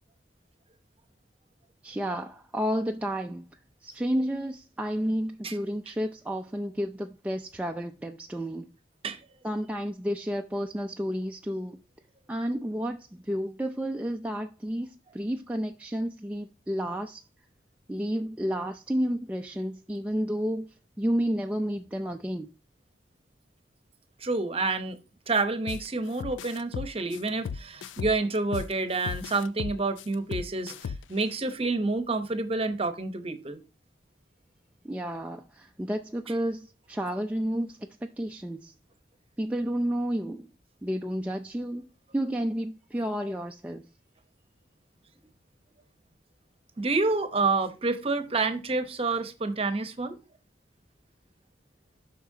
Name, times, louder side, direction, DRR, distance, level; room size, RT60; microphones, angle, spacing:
voice 1, 1.8-8.7 9.4-11.8 12.3-17.2 17.9-22.5 34.8-38.7 39.4-40.5 40.8-43.9, equal, 10° right, 0.3 m, -31 dB
voice 2, 24.2-25.0 25.3-33.6 46.8-50.2, right 3 dB, 30° right, 0.8 m, -28 dB
sound 1, 25.7-25.9 26.2-28.7 29.1-31.2, left 6 dB, 85° left, 0.4 m, -35 dB
8.4 x 5.8 x 2.7 m
head